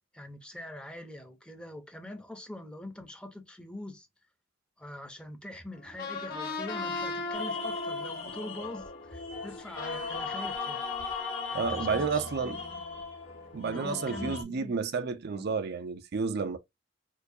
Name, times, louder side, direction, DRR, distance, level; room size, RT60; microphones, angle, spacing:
voice 1, 0.1-4.1 4.8-10.8 11.5-12.8 13.6-14.8 15.3-15.6, left 1 dB, 5° left, 0.6 m, -44 dB
sound 1, 5.7-12.7, left 3 dB, 55° left, 1.3 m, -39 dB
sound 2, 7.3-14.4, left 4 dB, 85° left, 1.6 m, -38 dB
voice 2, 11.5-12.6 13.5-16.6, right 5 dB, 60° right, 0.5 m, -31 dB
4.4 x 2.3 x 2.7 m
head